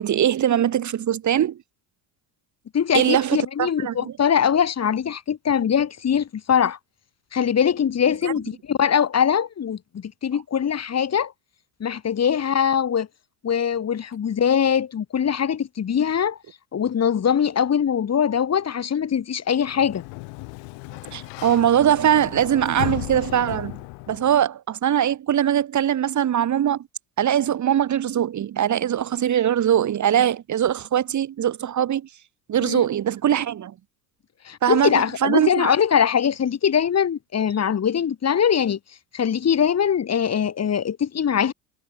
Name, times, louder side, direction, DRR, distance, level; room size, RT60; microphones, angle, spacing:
voice 1, 0.0-1.6 2.9-4.1 8.2-8.3 21.1-23.8 24.1-26.8 27.2-32.1 32.5-33.7 34.6-35.7, right 10 dB, 40° right, 2.1 m, -21 dB
voice 2, 2.7-6.8 7.3-11.3 11.8-13.1 13.4-16.4 16.7-20.0 32.6-32.8 34.4-38.8 39.1-41.5, left 8 dB, 35° left, 3.2 m, -22 dB
Sliding door, 19.6-24.4, left 30 dB, 65° left, 2.6 m, -35 dB
hypercardioid pair, 75°, 45 cm